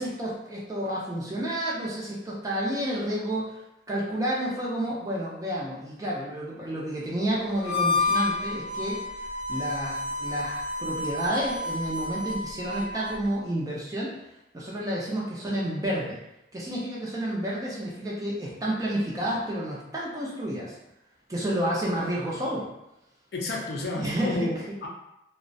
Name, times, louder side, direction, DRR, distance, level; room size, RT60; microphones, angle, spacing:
voice 1, 0.0-3.6 3.9-9.0 9.5-14.1 14.5-16.2 16.5-20.8 21.3-22.7 23.9-24.8, right 1 dB, 20° right, -5 dB, 0.4 m, -30 dB
Harmonica, 7.5-13.2, left 3 dB, 75° right, 0.8 m, -30 dB
voice 2, 23.3-24.9, left 2 dB, 60° left, -1 dB, 0.4 m, -31 dB
2.3 x 2.0 x 2.6 m, 0.87 s
head